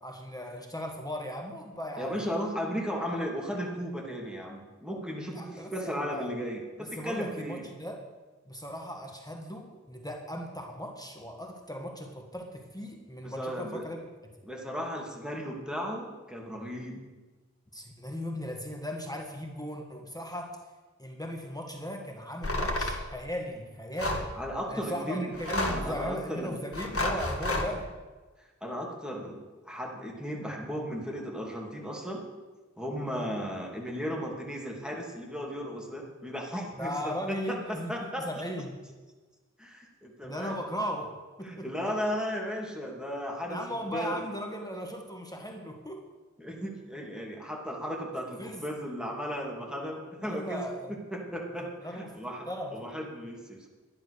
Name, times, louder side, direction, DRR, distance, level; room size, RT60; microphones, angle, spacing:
voice 1, 0.0-2.1 5.3-6.3 6.8-8.0 8.5-14.0 17.7-20.5 21.0-24.3 24.7-27.9 33.1-33.3 36.7-38.8 40.2-41.7 43.5-46.0 48.4-48.6 50.2-51.0 51.8-52.2 52.5-52.8, equal, 15° left, 1 dB, 1.7 m, -37 dB
voice 2, 2.0-7.7 13.2-13.8 14.4-17.0 24.4-25.3 25.6-26.6 28.4-29.4 29.7-32.2 32.8-38.2 39.6-40.6 41.4-44.2 46.4-53.7, equal, 5° right, -2 dB, 2.7 m, -35 dB
sound 1, 22.4-23.0 24.0-24.3 25.3-25.9 26.7-27.7, left 1 dB, 50° left, 1.8 m, -30 dB
11.5 x 10.5 x 6.6 m, 1.3 s
wide cardioid pair, 60°, 29 cm